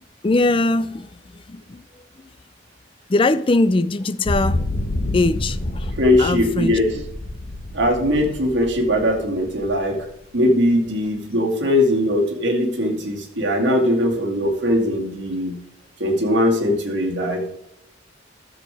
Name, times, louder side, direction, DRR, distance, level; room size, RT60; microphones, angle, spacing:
voice 1, 0.2-2.1 3.1-4.7 5.1-5.9 6.2-7.0, left 2 dB, 30° left, 0.4 m, -21 dB
sound 1, 4.3-10.3, left 1 dB, 65° left, 1.5 m, -28 dB
voice 2, 6.0-6.9 7.7-10.1 10.3-15.6 16.0-17.5, left 1 dB, 80° right, 2.3 m, -20 dB
13.0 x 7.2 x 3.5 m
head